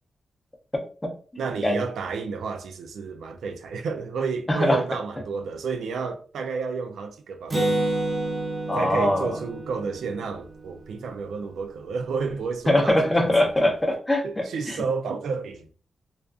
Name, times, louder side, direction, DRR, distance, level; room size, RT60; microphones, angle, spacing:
voice 1, 0.7-1.1 1.6-1.8 4.5-4.8 8.7-9.3 12.7-14.8, left 1 dB, 15° left, 0.5 m, -22 dB
voice 2, 1.4-8.0 8.7-13.3 14.2-15.7, right 5 dB, 85° right, 0.3 m, -31 dB
Acoustic guitar, 7.5-11.2, right 2 dB, 30° right, 0.6 m, -29 dB
2.3 x 2.3 x 2.3 m
wide cardioid pair, 115°, 0 cm